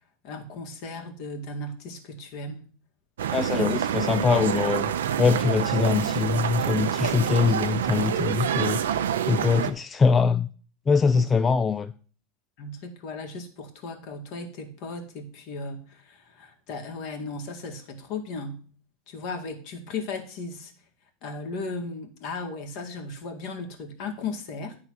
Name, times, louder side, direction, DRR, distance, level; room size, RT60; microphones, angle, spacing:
voice 1, 0.2-2.6 3.5-3.9 5.1-5.3 11.0-11.3 12.6-18.6 19.1-20.7 21.2-24.8, left 3 dB, 55° left, 1.8 m, -36 dB
sound 1, 3.2-9.7, right 9 dB, 85° right, 0.6 m, -27 dB
voice 2, 3.3-4.9 5.2-10.5 10.9-11.9, left 5 dB, 20° left, 0.4 m, -23 dB
9.6 x 3.7 x 6.1 m
hypercardioid pair, 115°, 0 cm